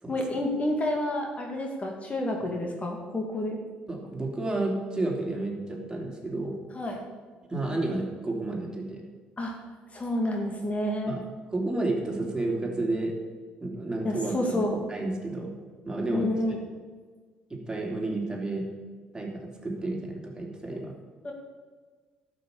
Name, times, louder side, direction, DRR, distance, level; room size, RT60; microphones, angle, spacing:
voice 1, 0.1-3.6 6.7-7.0 9.4-9.5 9.9-11.2 14.0-14.8 16.1-16.6 20.7-20.8 21.2-21.3, left 1 dB, 30° left, 1 dB, 2.2 m, -29 dB
voice 2, 3.9-6.6 7.5-9.0 11.1-11.2 11.5-13.1 13.6-15.6 15.8-16.3 17.5-18.7 19.1-20.9, right 2 dB, 15° right, -1 dB, 3.4 m, -31 dB
12.0 x 6.5 x 8.4 m, 1.5 s
hypercardioid pair, 55°, 4 cm